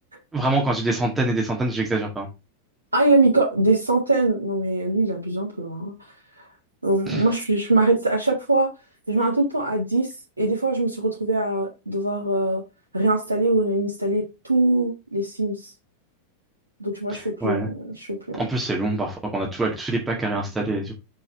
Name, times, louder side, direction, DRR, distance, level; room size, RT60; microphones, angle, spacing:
voice 1, 0.3-2.3 7.1-7.2 17.1-17.7 18.3-20.9, right 2 dB, 10° right, 1.9 m, -25 dB
voice 2, 2.9-5.9 6.4-6.5 6.8-8.7 9.1-10.1 10.4-12.6 12.9-15.7 16.8-18.4, right 2 dB, 80° right, 1.7 m, -22 dB
5.8 x 4.7 x 4.6 m
figure-of-eight pair, 90°, 0 cm